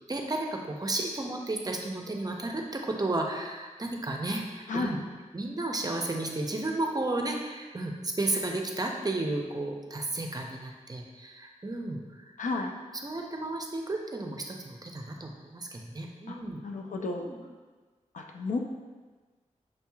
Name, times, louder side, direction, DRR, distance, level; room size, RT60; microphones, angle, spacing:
voice 1, 0.1-5.0 5.3-12.2 13.0-16.6 17.2-17.4, right 2 dB, 30° right, 1 dB, 0.5 m, -33 dB
voice 2, 12.4-12.7 16.3-16.4 16.6-17.3 18.1-18.6, left 3 dB, 75° left, 2 dB, 0.5 m, -32 dB
6.2 x 2.8 x 2.3 m, 1.3 s
wide cardioid pair, 65°, 13 cm